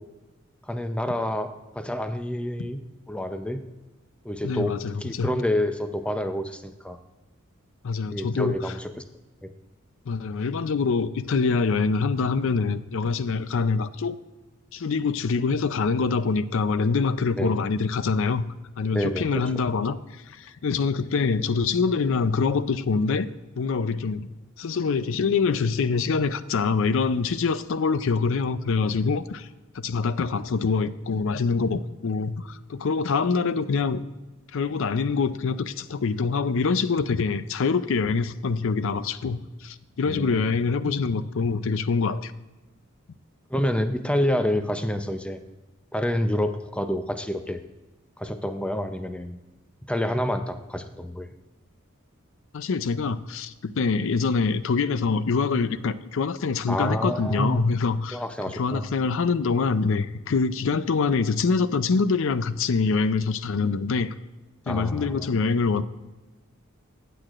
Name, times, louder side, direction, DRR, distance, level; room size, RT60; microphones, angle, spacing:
voice 1, 0.7-2.8 3.1-3.6 4.2-7.0 8.1-9.0 9.4-9.5 17.4-17.6 18.9-19.4 40.0-40.4 43.5-45.4 45.9-47.6 48.2-49.4 49.9-51.3 56.7-57.6 58.1-58.8 64.7-65.4, equal, 5° left, 8 dB, 0.5 m, -28 dB
voice 2, 4.4-5.3 7.8-8.6 10.1-14.2 14.7-18.4 18.8-23.3 23.6-24.3 24.6-29.5 29.7-34.0 34.5-42.3 52.5-58.2 58.5-64.1 64.7-65.8, left 4 dB, 65° left, 14 dB, 0.5 m, -25 dB
15.5 x 7.9 x 2.5 m, 1.1 s
head